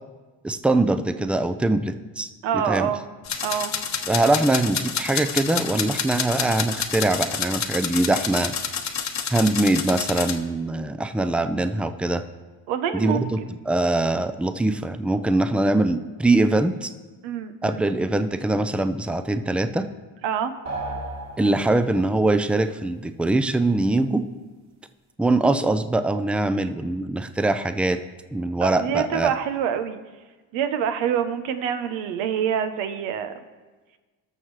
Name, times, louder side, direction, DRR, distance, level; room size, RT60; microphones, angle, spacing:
voice 1, 0.4-2.9 4.1-8.5 9.3-12.2 12.9-13.4 13.7-16.9 17.6-19.9 21.4-24.2 25.2-28.0 28.3-29.3, right 2 dB, 5° right, 10 dB, 0.5 m, -22 dB
voice 2, 2.4-3.0 3.4-3.7 12.7-13.3 17.2-17.8 20.2-20.5 21.6-21.7 28.6-30.0 30.5-33.3, right 8 dB, 80° right, 9 dB, 1.0 m, -26 dB
sound 1, 3.2-10.4, left 6 dB, 40° left, 1.0 m, -29 dB
sound 2, 20.6-22.2, right 2 dB, 40° right, 2.2 m, -34 dB
19.0 x 6.4 x 3.2 m, 1.3 s
supercardioid pair, 70°, 44 cm